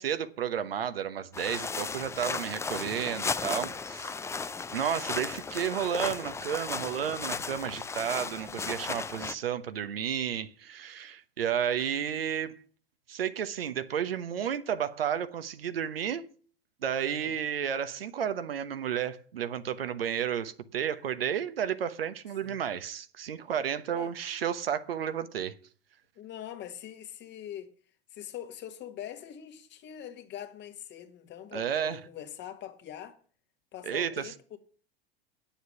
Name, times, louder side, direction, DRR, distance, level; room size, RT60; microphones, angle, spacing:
voice 1, 0.0-4.1 4.7-12.6 13.1-16.3 16.8-25.5 31.5-32.0 33.8-34.3, right 8 dB, 80° right, 1.0 m, -32 dB
sound 1, 1.3-9.3, left 4 dB, 10° left, 0.5 m, -35 dB
voice 2, 4.9-5.3 17.1-17.4 22.4-22.6 23.9-24.1 26.2-27.7 28.1-33.2 33.7-34.6, left 10 dB, 40° left, 1.7 m, -43 dB
9.4 x 7.2 x 6.9 m
hypercardioid pair, 90°, 29 cm